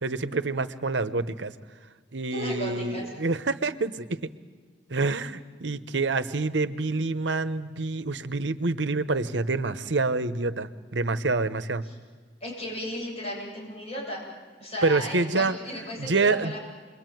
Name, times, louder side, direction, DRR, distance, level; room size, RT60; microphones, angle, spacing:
voice 1, 0.0-1.5 2.1-4.3 4.9-11.8 14.8-15.6 16.0-16.5, right 3 dB, 85° right, 12 dB, 1.0 m, -27 dB
voice 2, 2.3-3.1 11.9-12.0 12.4-14.2 14.6-16.6, equal, 35° left, -3 dB, 8.0 m, -35 dB
28.0 x 22.0 x 9.3 m, 1.5 s
head